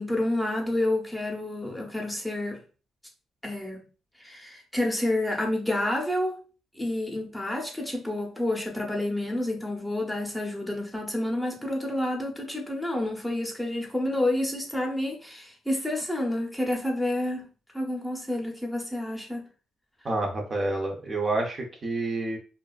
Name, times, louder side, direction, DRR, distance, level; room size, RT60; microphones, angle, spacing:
voice 1, 0.0-2.6 3.4-3.8 4.2-6.4 6.7-17.5 17.7-19.5, left 1 dB, 5° left, 0.7 m, -29 dB
voice 2, 20.0-22.4, right 2 dB, 35° right, 0.6 m, -28 dB
2.6 x 2.3 x 2.3 m
cardioid pair, 90°, 0 cm